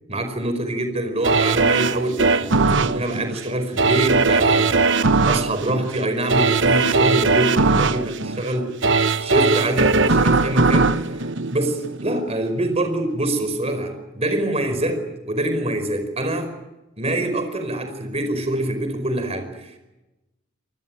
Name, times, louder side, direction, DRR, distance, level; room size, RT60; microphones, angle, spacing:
voice 1, 0.1-8.7 9.2-11.2 11.5-16.5 17.0-19.8, right 1 dB, 30° right, 8 dB, 5.0 m, -25 dB
sound 1, 1.2-12.2 12.6-12.7, right 3 dB, 65° right, 1.1 m, -19 dB
27.5 x 20.5 x 8.9 m, 0.98 s
head